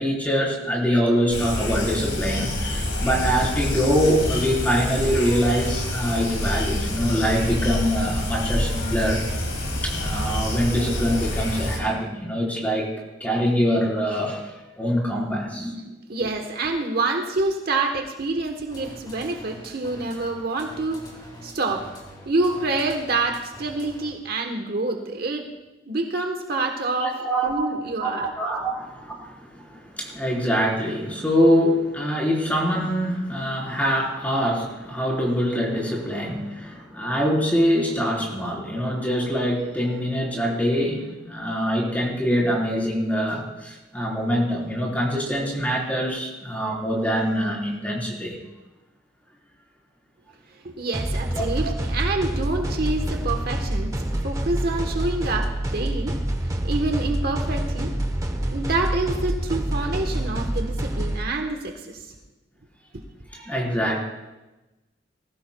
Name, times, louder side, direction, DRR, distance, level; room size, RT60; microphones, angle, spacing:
voice 1, 0.0-9.2 9.8-12.9 13.2-15.7 27.0-27.5 28.0-48.4 51.3-51.4 63.3-64.0, equal, 10° left, -3 dB, 3.9 m, -24 dB
sound 1, 1.3-11.8, left 1 dB, 90° left, 3.5 m, -27 dB
voice 2, 15.8-22.0 22.2-25.5 25.9-28.3 28.7-28.8 50.6-54.0 54.2-56.1 56.6-57.9 58.5-62.1, right 2 dB, 55° right, 3 dB, 1.1 m, -27 dB
sound 2, 18.7-24.3, equal, 25° left, 3.5 m, -44 dB
sound 3, 50.9-61.2, right 1 dB, 20° right, 0.9 m, -27 dB
20.0 x 15.5 x 2.3 m, 1.0 s
head